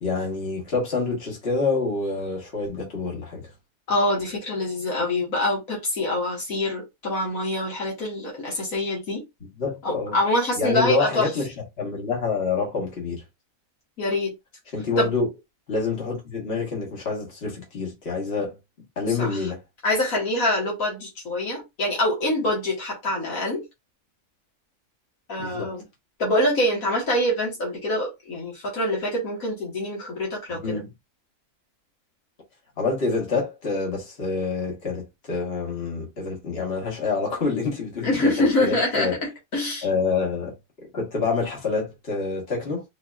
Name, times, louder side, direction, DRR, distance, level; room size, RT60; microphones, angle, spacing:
voice 1, 0.0-3.5 9.6-10.2 10.6-13.2 14.7-15.3 15.7-18.6 18.9-19.6 25.4-25.7 30.5-30.9 32.8-38.3 38.6-39.1 39.8-42.8, left 4 dB, 50° left, 1.7 m, -27 dB
voice 2, 3.9-9.2 9.8-11.3 14.0-14.3 15.0-15.1 19.1-19.5 19.8-23.6 25.3-25.8 26.2-30.8 38.0-39.9, left 1 dB, 80° left, 2.0 m, -25 dB
4.7 x 2.8 x 2.4 m
omnidirectional pair, 1.4 m